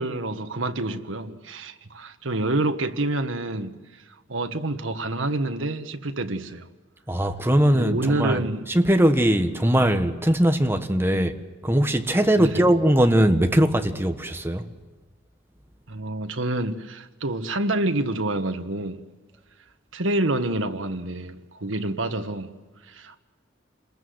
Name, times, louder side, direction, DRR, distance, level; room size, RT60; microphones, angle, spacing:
voice 1, 0.0-3.8 4.3-6.7 7.7-8.7 11.1-11.3 12.4-12.6 15.9-19.0 19.9-22.5 22.9-23.2, right 2 dB, 90° right, 1.5 m, -27 dB
voice 2, 7.1-11.4 11.6-14.6, right 1 dB, 10° right, 1.4 m, -20 dB
27.5 x 21.0 x 8.0 m
head